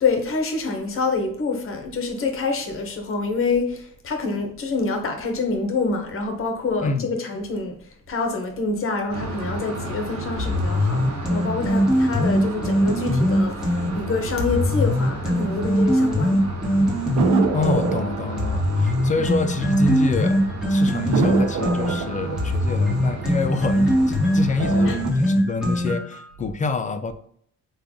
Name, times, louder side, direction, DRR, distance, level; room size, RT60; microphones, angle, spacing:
voice 1, 0.0-7.7 8.1-16.4 19.1-19.3 24.9-25.0, left 4 dB, 45° left, 4 dB, 0.9 m, -26 dB
sound 1, 9.1-25.0, right 1 dB, 55° right, 1.0 m, -33 dB
sound 2, 10.4-13.9 14.4-17.9 18.4-26.2, equal, ahead, 1.2 m, -21 dB
sound 3, 17.2-20.2 20.5-20.6 21.1-24.1 24.5-25.1, right 7 dB, 75° right, 0.5 m, -28 dB
voice 2, 17.5-20.4 20.7-27.1, left 3 dB, 25° left, 9 dB, 0.3 m, -27 dB
3.3 x 2.3 x 3.6 m, 0.62 s
cardioid pair, 90°, 30 cm